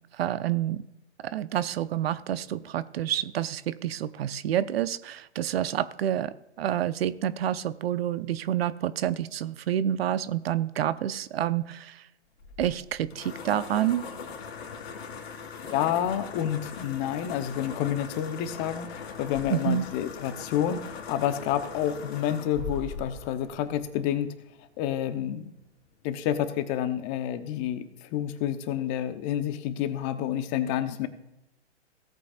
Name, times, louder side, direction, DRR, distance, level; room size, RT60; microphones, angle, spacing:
voice 1, 0.1-0.8 1.2-12.0 12.6-14.1 19.5-19.8, right 11 dB, 60° right, 15 dB, 0.7 m, -28 dB
sound 1, 12.4-24.2, left 5 dB, 60° left, 2.7 m, -40 dB
voice 2, 15.7-24.3 24.8-25.5 26.0-31.1, left 10 dB, 35° left, 10 dB, 1.0 m, -29 dB
17.5 x 8.4 x 2.5 m, 0.89 s
hypercardioid pair, 125°, 34 cm